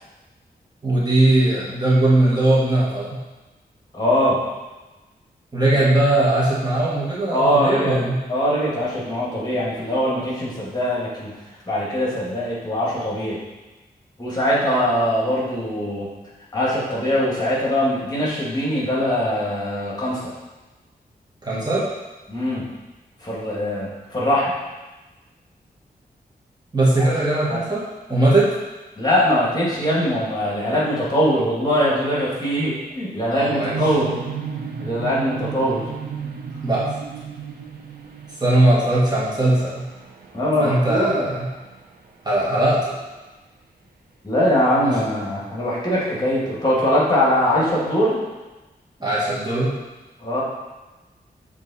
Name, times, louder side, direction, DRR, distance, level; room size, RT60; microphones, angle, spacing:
voice 1, 0.8-3.2 5.5-8.2 21.4-21.9 26.7-27.8 28.1-28.5 33.3-33.8 35.6-35.8 36.6-36.9 38.4-39.8 40.6-41.5 42.2-43.0 44.8-44.9 49.0-49.7, right 1 dB, 25° right, -7 dB, 1.8 m, -19 dB
voice 2, 3.9-4.4 5.8-5.9 7.3-8.0 8.3-11.3 11.7-13.4 14.2-16.1 16.5-20.3 22.3-22.7 23.2-24.6 27.0-27.1 27.5-27.6 29.0-34.1 34.8-35.9 40.3-41.3 44.2-48.2 50.2-50.4, equal, 25° left, -6 dB, 2.0 m, -22 dB
sound 1, 33.6-42.5, right 6 dB, 80° right, 0.8 m, -34 dB
7.3 x 3.6 x 4.2 m, 1.1 s
wide cardioid pair, 85°, 16 cm